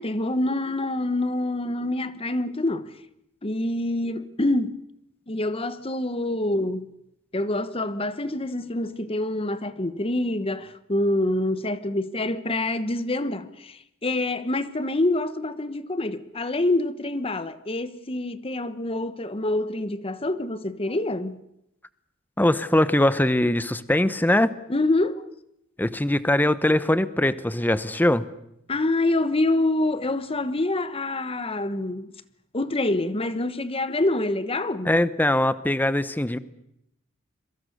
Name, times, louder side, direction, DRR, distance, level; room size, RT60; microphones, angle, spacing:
voice 1, 0.0-2.9 3.4-4.8 5.3-6.9 7.3-21.4 24.7-25.3 28.7-32.1 32.5-34.9, left 2 dB, 30° left, 1.2 m, -26 dB
voice 2, 22.4-24.5 25.8-28.3 34.9-36.4, left 1 dB, 10° left, 0.9 m, -21 dB
26.0 x 23.0 x 6.7 m
head